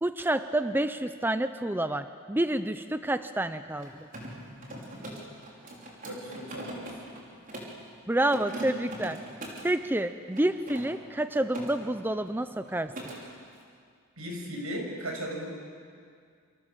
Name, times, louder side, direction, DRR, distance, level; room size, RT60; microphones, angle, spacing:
voice 1, 0.0-4.1 8.1-9.2 9.6-12.9, right 1 dB, 10° right, 10 dB, 0.7 m, -28 dB
Mechanisms, 3.7-7.8 8.2-9.7 10.3-11.7 12.0-12.3 12.6-13.2, right 1 dB, 40° right, 5.8 m, -41 dB
voice 2, 6.0-6.9 14.2-15.4, equal, 85° right, 1 dB, 6.8 m, -36 dB
29.0 x 27.5 x 7.5 m, 2.2 s
head